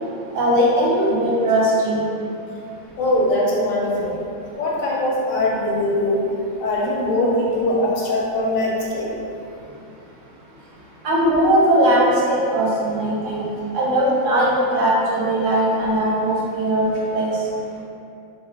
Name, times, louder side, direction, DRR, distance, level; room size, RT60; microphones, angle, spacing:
voice 1, 0.3-2.0 11.0-13.4 13.7-17.3, right 1 dB, 70° right, -5 dB, 0.9 m, -19 dB
voice 2, 3.0-4.2 4.6-6.2 6.6-9.1, left 1 dB, 85° left, -4 dB, 1.0 m, -21 dB
2.4 x 2.0 x 2.7 m, 2.6 s
omnidirectional pair, 1.4 m